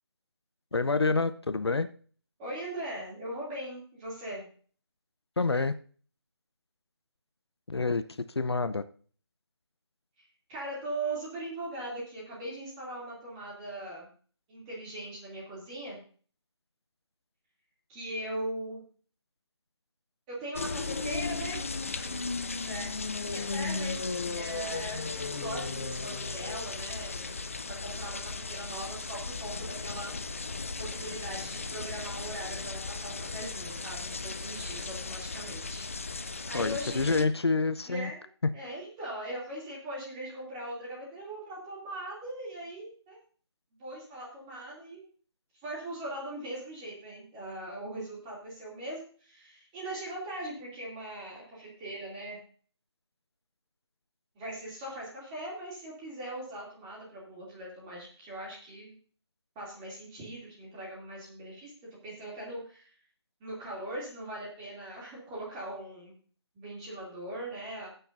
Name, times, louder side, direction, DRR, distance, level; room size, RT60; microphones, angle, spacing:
voice 1, 0.7-1.9 5.4-5.7 7.7-8.0 8.4-8.8 36.5-38.1, left 3 dB, 65° left, 12 dB, 0.8 m, -27 dB
voice 2, 2.4-4.5 10.2-14.1 14.5-16.0 17.9-18.8 20.3-21.6 21.9-27.3 27.6-30.5 30.8-35.8 36.5-37.3 37.8-38.3 38.5-43.2 43.8-45.1 45.6-52.4 54.3-59.0 59.5-61.7 62.0-62.9 63.4-66.1 66.5-67.9, right 1 dB, 10° right, -5 dB, 2.7 m, -40 dB
sound 1, 20.6-37.3, left 4 dB, 30° left, 0.6 m, -36 dB
16.0 x 9.0 x 2.6 m, 0.42 s
figure-of-eight pair, 165°, 14 cm